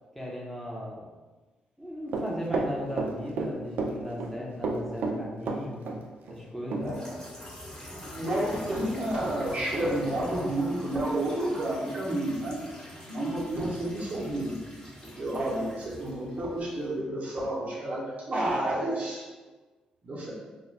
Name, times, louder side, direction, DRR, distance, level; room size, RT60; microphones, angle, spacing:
voice 1, 0.1-1.0 1.8-5.9 6.3-6.9, equal, ahead, -4 dB, 0.9 m, -36 dB
Run, 2.1-3.5 3.8-4.3 4.6-6.0 6.3-6.4 6.7-6.8, right 3 dB, 65° right, 0.4 m, -30 dB
sound 1, 6.8-17.0, equal, 20° left, 1.3 m, -45 dB
voice 2, 6.8-7.1 8.1-12.6 13.0-14.6 15.0-19.3 20.0-20.3, right 1 dB, 45° right, -6 dB, 0.9 m, -30 dB
2.4 x 2.2 x 3.2 m, 1.3 s
hypercardioid pair, 40°, 3 cm